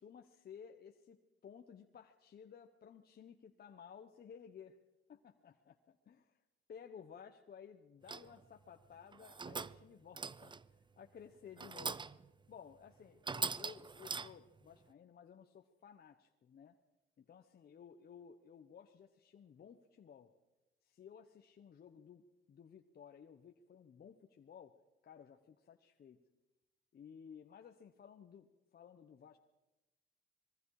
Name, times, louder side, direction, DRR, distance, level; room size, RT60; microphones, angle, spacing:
voice 1, 0.0-4.7 5.1-6.4 6.7-10.5 11.0-12.1 12.5-16.8 17.2-20.3 20.8-22.2 22.5-24.8 25.0-26.2 26.9-29.4, left 7 dB, 50° left, 4 dB, 1.3 m, -56 dB
sound 1, 8.1-8.4 9.1-9.9 10.1-10.7 11.6-12.3 12.7-12.8 13.2-14.6, right 4 dB, 25° right, 0.6 m, -42 dB
26.0 x 21.5 x 5.0 m, 1.0 s
cardioid pair, 90°, 20 cm